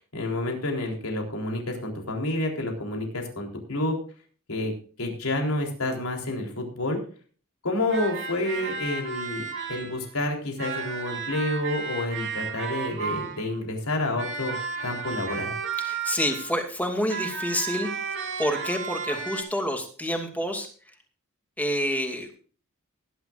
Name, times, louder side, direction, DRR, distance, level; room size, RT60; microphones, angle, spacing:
voice 1, 0.0-4.0 4.5-4.7 5.0-7.0 7.6-14.5 14.8-15.5, left 1 dB, 80° left, 1 dB, 3.8 m, -29 dB
sound 1, 7.9-10.1 10.6-13.6 14.2-16.6 17.1-19.4, right 5 dB, 60° right, 2.5 m, -33 dB
voice 2, 15.8-17.9 18.4-20.7 21.6-22.3, equal, 5° left, 4 dB, 2.6 m, -28 dB
19.5 x 11.0 x 2.6 m, 0.42 s
head